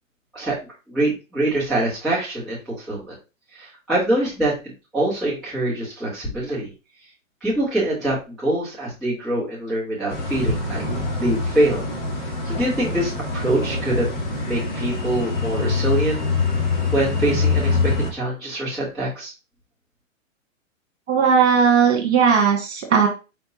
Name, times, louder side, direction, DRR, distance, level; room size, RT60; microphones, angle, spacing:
voice 1, 0.9-3.1 3.5-6.7 7.4-10.8 11.2-11.8 12.4-14.1 14.4-16.2 16.9-19.3, right 1 dB, ahead, -14 dB, 1.2 m, -24 dB
sound 1, 10.1-18.1, left 3 dB, 35° left, 1.3 m, -24 dB
voice 2, 21.1-23.1, right 6 dB, 55° right, 1 dB, 1.8 m, -17 dB
4.6 x 3.5 x 2.7 m, 0.30 s
hypercardioid pair, 170°, 40 cm